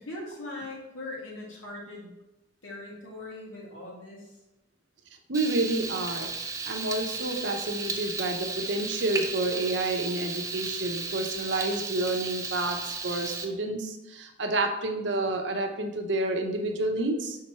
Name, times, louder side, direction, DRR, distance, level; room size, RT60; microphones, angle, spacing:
voice 1, 0.0-2.1 2.6-4.4, left 2 dB, 80° left, -4 dB, 2.0 m, -40 dB
Frying (food), 5.3-13.5, right 4 dB, 15° right, 0.4 m, -34 dB
voice 2, 5.3-6.3 6.7-17.4, right 2 dB, 65° right, 4 dB, 0.7 m, -29 dB
5.8 x 3.8 x 4.3 m, 0.96 s
head